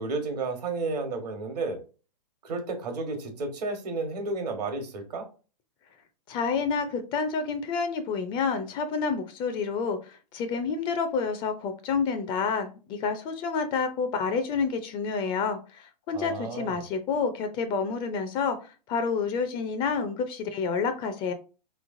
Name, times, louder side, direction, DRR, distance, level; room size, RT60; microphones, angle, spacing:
voice 1, 0.0-1.8 2.4-5.3 16.1-16.8, right 3 dB, 75° right, 5 dB, 1.2 m, -32 dB
voice 2, 6.3-18.6 18.9-21.3, left 5 dB, 25° left, 8 dB, 0.4 m, -29 dB
3.4 x 3.1 x 2.5 m, 0.34 s
hypercardioid pair, 130°, 21 cm